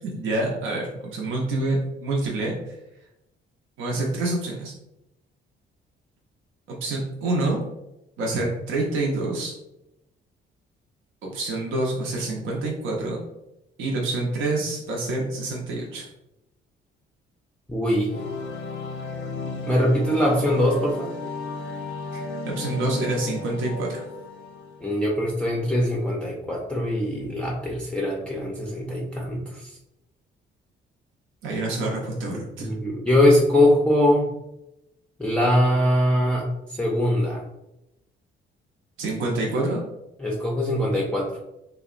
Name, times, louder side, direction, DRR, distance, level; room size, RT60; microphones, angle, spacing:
voice 1, 0.0-2.7 3.8-4.7 6.7-7.6 8.2-9.5 11.2-13.2 13.8-16.1 22.1-22.2 22.4-24.0 31.4-32.7 39.0-39.8, right 2 dB, 80° right, -1 dB, 0.6 m, -27 dB
voice 2, 17.7-18.2 19.7-21.2 24.8-29.7 32.6-34.3 35.2-37.4 40.2-41.4, left 1 dB, 5° left, -3 dB, 0.4 m, -22 dB
sound 1, 18.1-25.0, left 3 dB, 80° left, 0.4 m, -34 dB
2.8 x 2.1 x 2.4 m, 0.88 s
cardioid pair, 90°, 20 cm